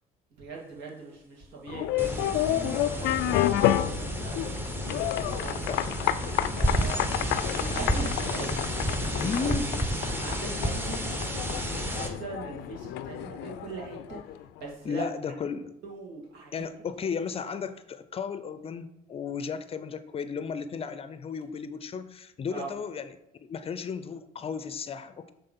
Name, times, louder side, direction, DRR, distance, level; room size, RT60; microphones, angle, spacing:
voice 1, 0.4-4.5 5.4-5.6 6.2-8.6 9.2-9.5 10.2-11.1 11.6-14.2 14.6-15.0 15.8-16.6 22.5-22.7, right 4 dB, 80° right, -2 dB, 2.3 m, -41 dB
sound 1, 1.7-14.4, left 13 dB, 85° left, 0.4 m, -30 dB
sound 2, 2.0-12.1, right 1 dB, 10° right, 0.9 m, -31 dB
voice 2, 5.7-6.0 9.2-9.7 14.8-15.7 16.5-25.3, left 6 dB, 35° left, 12 dB, 0.5 m, -34 dB
7.8 x 3.7 x 5.5 m, 0.83 s
cardioid pair, 110°, 17 cm